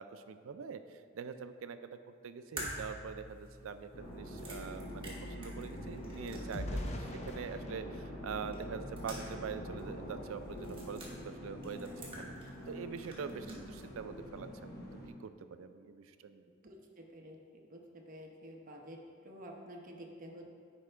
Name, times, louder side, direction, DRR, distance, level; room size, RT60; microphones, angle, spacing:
voice 1, 0.0-2.0 2.2-11.9 12.2-12.3 12.7-14.8 15.2-16.5, right 6 dB, 80° right, 10 dB, 0.4 m, -44 dB
sound 1, 2.6-7.0 7.3-7.4 8.5-9.5 9.8-9.9 10.6-11.1 11.6-12.7 13.0-13.9, right 1 dB, 25° right, 1.3 m, -47 dB
sound 2, 3.6-3.7 4.0-9.4 10.0-10.2 10.5-10.8, left 1 dB, 35° left, 0.6 m, -46 dB
sound 3, 3.9-15.1, equal, 50° left, 0.9 m, -45 dB
voice 2, 16.6-17.4 17.7-20.4, equal, 45° right, 1 dB, 0.8 m, -50 dB
9.8 x 4.5 x 3.3 m, 2.1 s
head